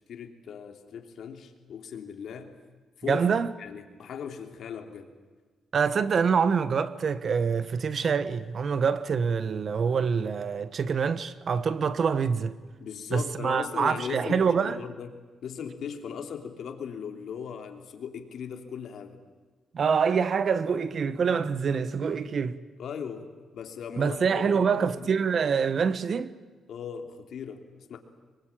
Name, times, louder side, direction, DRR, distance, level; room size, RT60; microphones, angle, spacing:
voice 1, 0.1-2.5 3.0-3.3 3.6-5.1 12.8-19.2 22.8-25.2 26.7-28.0, left 7 dB, 70° left, 3.2 m, -38 dB
voice 2, 3.1-3.5 5.7-12.6 13.1-14.8 19.7-22.6 24.0-26.3, right 6 dB, 50° right, 1.3 m, -25 dB
24.5 x 23.0 x 8.7 m
cardioid pair, 110°, 0 cm